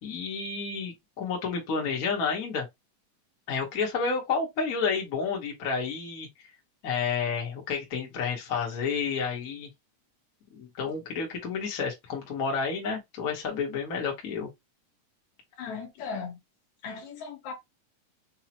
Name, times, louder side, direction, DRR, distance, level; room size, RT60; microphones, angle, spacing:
voice 1, 0.0-2.7 3.5-6.5 6.8-9.7 10.5-14.5, left 5 dB, 50° left, 1.0 m, -30 dB
voice 2, 15.6-16.4 16.8-17.5, left 5 dB, 70° left, 2.4 m, -37 dB
5.7 x 2.2 x 2.9 m
omnidirectional pair, 3.6 m